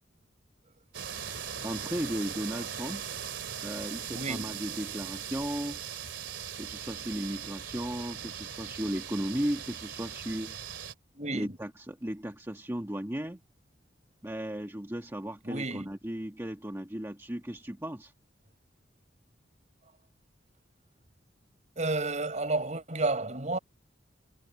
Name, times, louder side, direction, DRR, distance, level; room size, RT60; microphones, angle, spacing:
sound 1, 0.9-10.9, right 8 dB, 75° right, 2.7 m, -39 dB
voice 1, 1.6-3.0 3.6-5.8 6.6-10.5 11.3-13.4 14.2-18.1, equal, 15° right, 1.6 m, -35 dB
voice 2, 4.1-4.4 11.1-11.6 15.4-15.9 21.8-23.6, right 2 dB, 40° right, 5.0 m, -31 dB
head